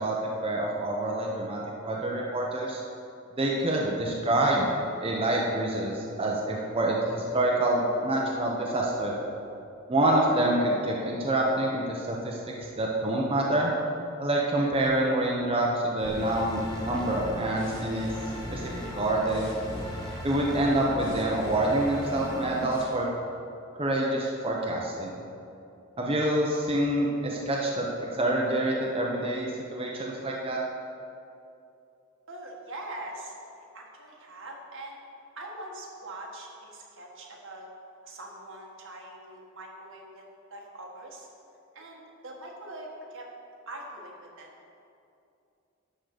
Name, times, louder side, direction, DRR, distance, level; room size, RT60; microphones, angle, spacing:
voice 1, 0.0-2.8 3.3-4.7 5.0-9.1 9.9-13.7 14.2-18.1 18.5-19.5 20.2-23.1 23.8-25.1 26.0-30.6, right 1 dB, 25° right, -3 dB, 0.9 m, -27 dB
sound 1, 16.0-22.8, left 1 dB, 25° left, 2.4 m, -39 dB
sound 2, 16.0-21.0, right 1 dB, 5° left, 0.9 m, -42 dB
voice 2, 32.3-35.0 35.3-37.7 38.0-40.2 40.5-41.3 41.7-43.3 43.7-44.5, right 1 dB, 65° right, -1 dB, 1.7 m, -43 dB
11.5 x 3.9 x 7.8 m, 2.7 s
head